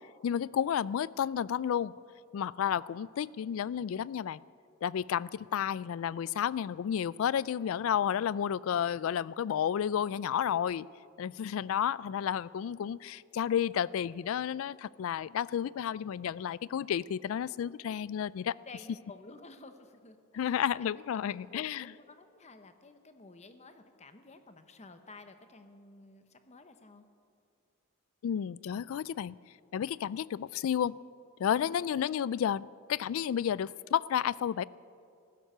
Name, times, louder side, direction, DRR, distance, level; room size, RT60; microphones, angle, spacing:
voice 1, 0.2-1.9 2.3-4.4 4.8-10.9 11.2-18.5 20.3-21.9 28.2-29.4 29.7-30.9 31.4-34.6, left 9 dB, 70° left, 21 dB, 0.3 m, -31 dB
voice 2, 18.7-20.9 21.5-27.1 31.6-31.9, left 3 dB, 30° left, 9 dB, 0.9 m, -53 dB
15.5 x 12.5 x 6.7 m, 2.4 s
head